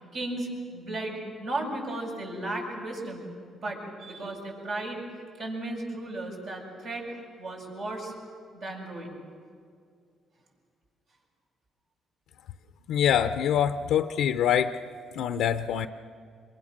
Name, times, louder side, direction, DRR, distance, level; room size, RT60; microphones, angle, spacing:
voice 1, 0.1-3.3 3.5-5.0 5.4-8.1 8.5-9.2, right 2 dB, 70° right, -2 dB, 7.2 m, -35 dB
voice 2, 12.9-14.8 15.1-15.9, left 9 dB, 90° left, 9 dB, 0.6 m, -25 dB
27.0 x 23.5 x 6.5 m, 2.2 s
cardioid pair, 90°, 0 cm